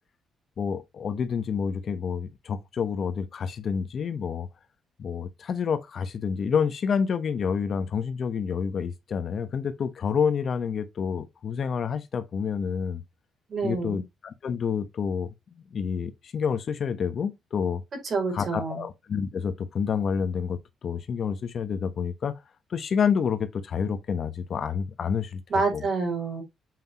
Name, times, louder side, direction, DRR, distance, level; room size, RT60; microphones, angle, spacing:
voice 1, 0.6-4.5 5.0-13.0 13.6-15.3 15.7-17.8 18.3-22.4 22.7-25.4 25.7-25.8, left 6 dB, 55° left, 1.1 m, -28 dB
voice 2, 13.5-14.0 18.0-18.8 25.5-26.4, right 4 dB, 45° right, 4.8 m, -27 dB
7.8 x 5.4 x 3.0 m
cardioid pair, 90°, 0 cm